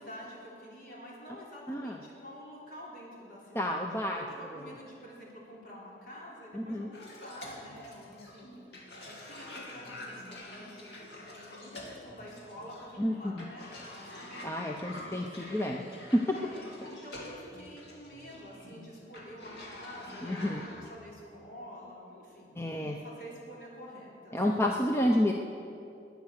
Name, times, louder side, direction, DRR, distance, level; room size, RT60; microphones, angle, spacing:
voice 1, 0.0-8.6 8.9-14.3 15.3-15.4 16.3-24.7, equal, 50° left, -5 dB, 4.1 m, -48 dB
voice 2, 3.5-4.2 6.5-6.9 13.0-13.1 14.4-15.8 16.1-16.2 20.2-20.6 22.6-23.0 24.3-25.3, equal, 15° left, 1 dB, 0.6 m, -29 dB
Cough, 6.9-20.9, left 1 dB, 75° left, 2.5 m, -47 dB
20.0 x 9.4 x 6.5 m, 2.7 s
head